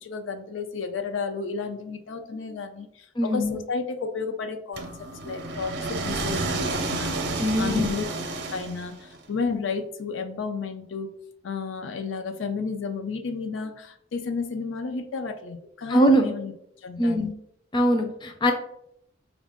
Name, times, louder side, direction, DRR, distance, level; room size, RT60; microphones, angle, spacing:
voice 1, 0.0-4.9 5.2-7.1 7.4-8.0 8.5-11.1 11.4-16.5 16.8-17.3, left 4 dB, 80° left, 7 dB, 0.4 m, -32 dB
voice 2, 3.2-3.6 7.4-7.9 15.9-16.3 17.0-17.3 17.7-18.5, equal, 25° left, 5 dB, 0.4 m, -22 dB
sound 1, 4.8-9.2, right 2 dB, 60° right, 0.6 m, -30 dB
4.1 x 2.4 x 3.6 m, 0.72 s
head